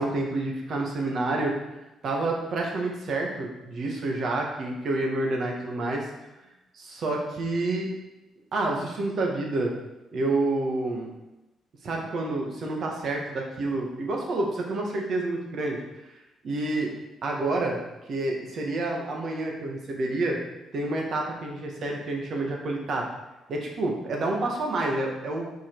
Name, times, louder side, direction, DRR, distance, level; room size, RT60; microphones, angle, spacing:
voice 1, 0.0-1.5 2.0-6.0 6.7-7.9 8.5-9.7 10.1-11.1 11.8-15.8 16.4-16.9 17.2-17.8 18.1-20.4 20.7-23.0 23.5-25.5, right 2 dB, 60° right, 0 dB, 1.6 m, -28 dB
5.5 x 5.2 x 4.6 m, 0.98 s
cardioid pair, 90°, 0 cm